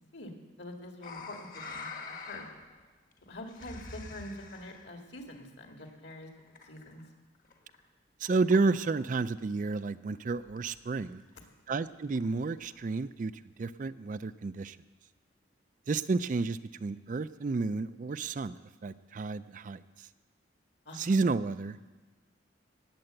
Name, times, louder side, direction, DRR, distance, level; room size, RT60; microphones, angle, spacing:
voice 1, 0.6-2.5 3.2-7.0 11.4-11.5 20.9-21.2, left 1 dB, 60° left, 3 dB, 2.0 m, -45 dB
sound 1, 1.0-2.8 3.1-4.9 5.8-7.1 7.3-7.9 8.3-9.1 9.4-9.5 9.7-9.8 10.0-10.1 10.3-10.8 11.1-11.2 11.7-13.0 13.6-13.7, left 3 dB, 45° left, 1.3 m, -46 dB
voice 2, 8.2-11.2 11.7-13.3 13.6-14.8 15.9-18.6 18.8-20.1 21.0-21.9, right 3 dB, 40° right, 14 dB, 0.3 m, -31 dB
18.5 x 7.8 x 7.8 m, 1.2 s
head